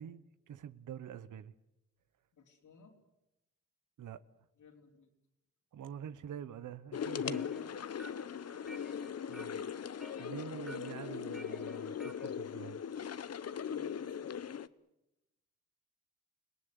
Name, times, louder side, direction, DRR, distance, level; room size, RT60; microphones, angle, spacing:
voice 1, 0.0-1.5 4.0-4.2 5.7-7.5 9.3-9.7 10.2-12.8, right 9 dB, 90° right, 1.1 m, -46 dB
voice 2, 2.3-3.0 4.6-5.1 7.1-7.8 13.6-14.6, left 4 dB, 85° left, 4.3 m, -61 dB
sound 1, 6.9-14.7, left 8 dB, 55° left, 0.9 m, -39 dB
sound 2, 7.0-12.3, right 1 dB, ahead, 0.9 m, -56 dB
29.5 x 18.5 x 8.0 m
cardioid pair, 75°, 30 cm